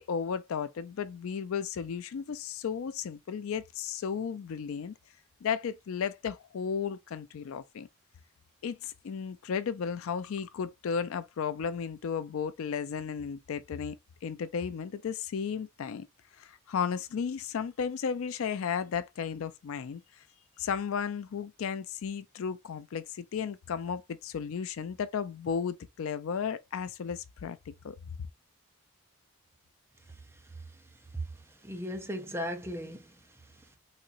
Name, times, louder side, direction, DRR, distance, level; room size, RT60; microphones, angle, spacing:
voice 1, 0.0-4.9 5.4-7.9 8.6-16.1 16.4-20.2 20.6-28.0, left 6 dB, 65° left, 0.4 m, -34 dB
voice 2, 30.4-30.8 31.1-33.8, equal, 10° right, 0.7 m, -38 dB
4.1 x 2.8 x 2.5 m
head